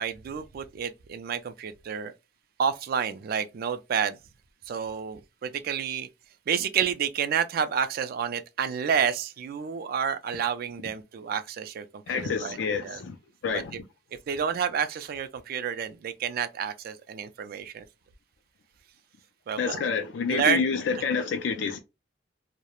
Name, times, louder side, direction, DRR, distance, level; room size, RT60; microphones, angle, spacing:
voice 1, 0.0-2.1 2.6-4.2 4.7-6.1 6.5-12.6 12.8-13.0 13.5-13.6 14.3-17.8 19.5-19.8 20.3-20.6, right 7 dB, 50° right, 0.3 m, -29 dB
voice 2, 12.1-13.2 13.4-13.8 19.6-21.8, left 5 dB, 75° left, 0.3 m, -28 dB
2.3 x 2.0 x 2.9 m
head